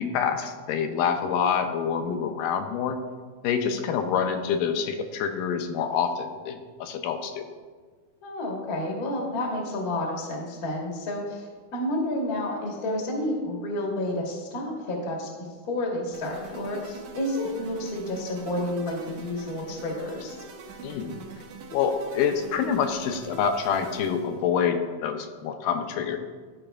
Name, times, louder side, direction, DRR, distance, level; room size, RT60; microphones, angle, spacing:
voice 1, 0.0-3.0 3.4-7.5 20.8-21.2 21.7-26.2, left 7 dB, 90° left, 7 dB, 2.2 m, -27 dB
voice 2, 8.2-11.4 11.7-15.3 15.6-20.4, left 1 dB, 50° left, -1 dB, 1.0 m, -30 dB
sound 1, 16.1-24.5, right 5 dB, 70° right, 1.7 m, -43 dB
14.0 x 4.8 x 2.3 m, 1.5 s
omnidirectional pair, 3.7 m